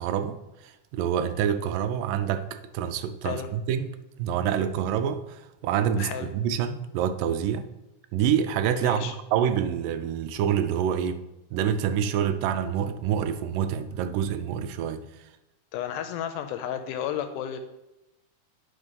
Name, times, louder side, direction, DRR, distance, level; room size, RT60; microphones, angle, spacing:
voice 1, 0.0-3.9 4.2-7.7 8.1-11.2 11.5-15.0, right 9 dB, 85° right, 10 dB, 2.2 m, -27 dB
voice 2, 6.0-6.3 8.8-9.1 15.7-17.6, left 9 dB, 80° left, 8 dB, 2.0 m, -32 dB
9.6 x 3.6 x 5.2 m, 0.94 s
omnidirectional pair, 3.9 m